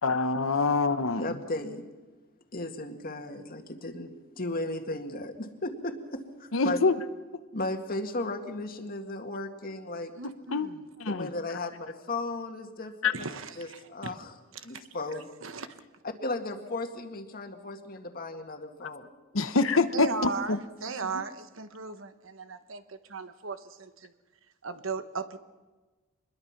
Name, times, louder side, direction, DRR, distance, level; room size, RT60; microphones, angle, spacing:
voice 1, 0.0-1.4 6.5-6.9 10.5-10.7 11.0-11.3 13.0-13.1 18.8-18.9 19.3-20.1 20.5-20.6, left 4 dB, 85° left, 10 dB, 1.0 m, -25 dB
voice 2, 1.2-1.8 2.5-6.8 7.5-10.1 11.1-13.3 13.6-14.3 14.6-15.3 16.2-19.1, left 2 dB, 45° left, 5 dB, 2.0 m, -35 dB
voice 3, 10.2-10.9 13.1-14.1 14.5-14.7 15.4-15.8 19.9-24.1 24.6-25.4, right 4 dB, 70° right, 10 dB, 1.2 m, -37 dB
25.0 x 21.0 x 6.0 m, 1.3 s
head